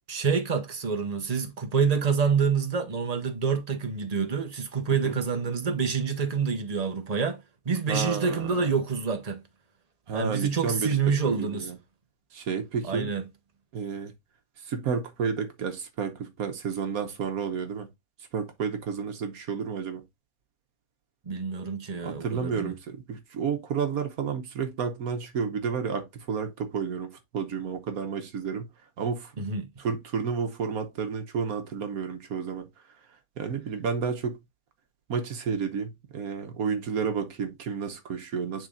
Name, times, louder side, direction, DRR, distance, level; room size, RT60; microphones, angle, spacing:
voice 1, 0.1-9.4 10.1-11.7 12.8-13.2 21.3-22.7 29.4-29.7, right 5 dB, 30° right, 1.1 m, -27 dB
voice 2, 7.9-8.7 10.1-11.8 12.3-13.1 13.7-14.1 14.6-17.9 18.3-20.0 22.0-28.7 29.0-29.3 29.8-32.7 33.4-34.4 35.1-38.7, right 6 dB, 80° right, 1.4 m, -31 dB
10.5 x 3.5 x 2.5 m
omnidirectional pair, 1.5 m